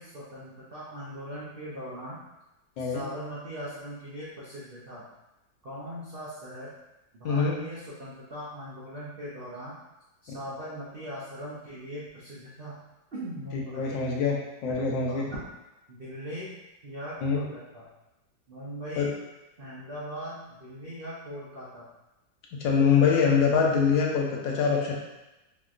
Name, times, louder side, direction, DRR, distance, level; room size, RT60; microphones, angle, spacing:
voice 1, 0.0-2.2 2.8-5.0 5.6-6.7 7.1-9.8 10.2-12.8 13.1-14.0 14.7-15.2 15.9-16.5 16.8-17.9 18.5-19.2 19.6-21.9, equal, 85° right, -8 dB, 0.5 m, -40 dB
voice 2, 7.2-7.5 13.5-14.4 14.6-15.2 17.2-17.4 19.0-19.1 22.6-24.9, left 6 dB, 85° left, -1 dB, 1.4 m, -24 dB
3.8 x 2.9 x 2.4 m, 0.98 s
omnidirectional pair, 2.0 m